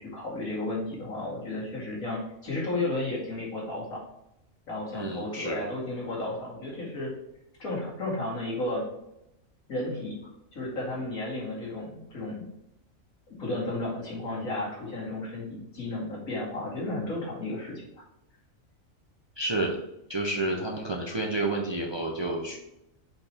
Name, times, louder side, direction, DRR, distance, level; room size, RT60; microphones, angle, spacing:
voice 1, 0.0-4.0 4.7-7.1 7.6-8.9 9.7-10.2 10.5-12.4 13.3-17.8, left 2 dB, 85° left, -5 dB, 2.5 m, -33 dB
voice 2, 4.9-5.6 19.4-19.8 20.1-22.6, right 2 dB, 30° right, 0 dB, 0.5 m, -30 dB
5.2 x 4.6 x 4.2 m, 0.85 s
omnidirectional pair, 1.4 m